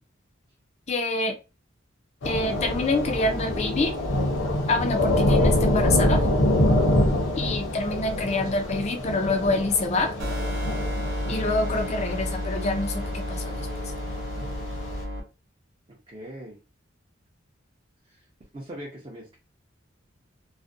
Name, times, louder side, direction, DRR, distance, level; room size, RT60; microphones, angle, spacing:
voice 1, 0.9-1.4 2.2-3.9 4.7-6.3 7.3-10.1 11.3-13.7, left 2 dB, 35° left, 5 dB, 0.4 m, -26 dB
Thunder / Rain, 2.2-15.0, left 1 dB, 65° left, 0.7 m, -26 dB
sound 1, 10.2-15.2, left 1 dB, 70° right, 0.6 m, -31 dB
voice 2, 15.9-16.6 18.1-18.2 18.5-19.4, right 1 dB, 25° right, -4 dB, 0.5 m, -41 dB
2.4 x 2.1 x 2.5 m, 0.30 s
head